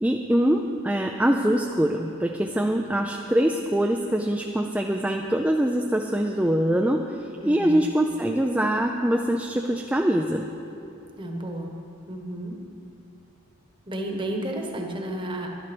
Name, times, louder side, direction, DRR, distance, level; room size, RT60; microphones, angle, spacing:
voice 1, 0.0-7.0 7.5-10.4, right 1 dB, 5° right, 2 dB, 0.4 m, -23 dB
voice 2, 7.4-7.8 11.2-11.7 12.1-12.6 13.9-15.5, right 1 dB, 20° right, 1 dB, 1.2 m, -32 dB
12.0 x 11.5 x 6.1 m, 2.7 s
head